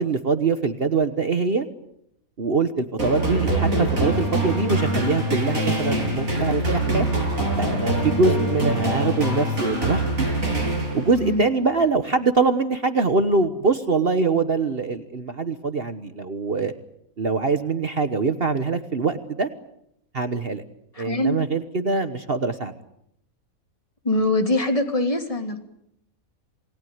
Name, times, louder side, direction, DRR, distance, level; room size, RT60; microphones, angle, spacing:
voice 1, 0.0-1.7 2.4-7.1 7.6-10.0 10.9-16.7 17.2-19.5 20.1-20.6 21.0-22.7, right 4 dB, 45° right, 9 dB, 1.4 m, -23 dB
sound 1, 3.0-11.3, right 1 dB, 70° right, 8.4 m, -24 dB
voice 2, 11.1-11.4 20.9-21.4 24.0-25.6, left 1 dB, 25° left, 5 dB, 3.0 m, -23 dB
28.0 x 20.0 x 9.5 m, 0.77 s
omnidirectional pair, 1.5 m